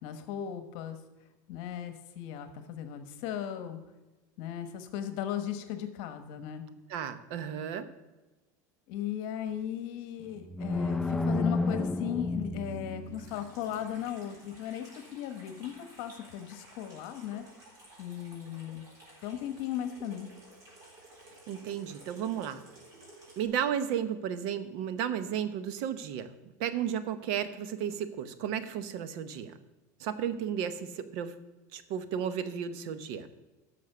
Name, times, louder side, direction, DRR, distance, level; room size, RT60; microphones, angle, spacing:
voice 1, 0.0-1.0 1.5-3.8 4.4-6.7 8.9-17.4 18.0-18.8 19.2-20.3, left 10 dB, 55° left, 8 dB, 1.1 m, -37 dB
voice 2, 6.9-7.9 21.5-22.6 23.4-29.5 30.0-31.3 31.7-33.3, right 9 dB, 60° right, 12 dB, 0.9 m, -33 dB
sound 1, 10.2-13.4, left 2 dB, ahead, 0.4 m, -31 dB
Water tap faucet / Sink (filling or washing), 13.1-23.4, right 1 dB, 40° right, 3.9 m, -54 dB
10.5 x 6.4 x 6.6 m, 1.1 s
supercardioid pair, 145°, 10 cm